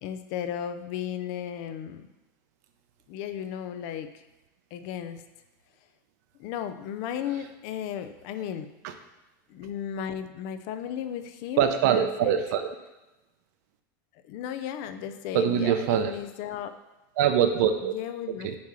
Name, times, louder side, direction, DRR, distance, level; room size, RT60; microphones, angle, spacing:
voice 1, 0.0-2.1 3.1-4.2 4.7-5.2 6.4-8.7 9.5-12.3 14.3-16.8 17.9-18.5, left 9 dB, 40° left, 10 dB, 0.4 m, -35 dB
voice 2, 11.6-12.8 15.3-16.2 17.2-17.9 18.4-18.6, right 9 dB, 55° right, 8 dB, 0.7 m, -24 dB
8.5 x 2.9 x 6.1 m, 1.0 s
supercardioid pair, 170°, 11 cm